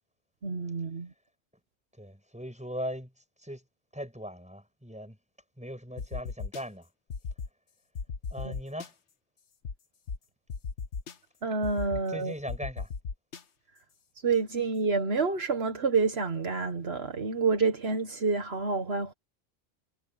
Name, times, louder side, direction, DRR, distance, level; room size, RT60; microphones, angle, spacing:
voice 1, 0.4-1.1 11.4-12.3 14.2-19.1, right 4 dB, 65° right, 1.6 m, -28 dB
voice 2, 2.0-3.1 3.4-3.6 3.9-5.2 5.6-6.9 8.3-8.9 11.9-12.9, equal, 5° right, 7.8 m, -39 dB
sound 1, 6.0-6.6 7.1-7.5 8.0-8.9 9.6-9.7 10.1-10.2 10.5-11.1 11.6-12.0 12.5-13.4, left 5 dB, 85° left, 1.5 m, -36 dB
omnidirectional pair, 1.1 m